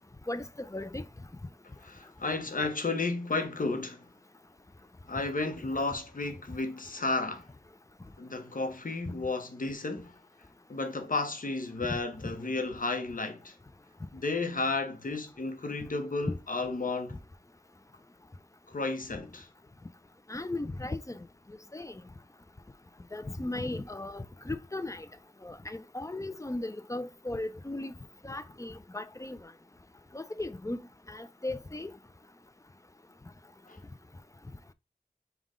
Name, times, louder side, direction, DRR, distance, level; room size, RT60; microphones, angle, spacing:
voice 1, 0.3-1.0 11.9-12.0 20.3-21.2 21.7-21.9 23.1-25.1 25.4-27.9 28.2-29.4 30.1-30.8 31.1-31.9, left 2 dB, 20° left, 0.5 m, -36 dB
voice 2, 1.8-4.0 5.1-7.5 8.2-10.2 10.7-13.5 14.1-17.2 18.7-19.5 33.7-33.8, left 3 dB, 60° left, 0.9 m, -33 dB
5.4 x 2.4 x 3.7 m
wide cardioid pair, 45°, 16 cm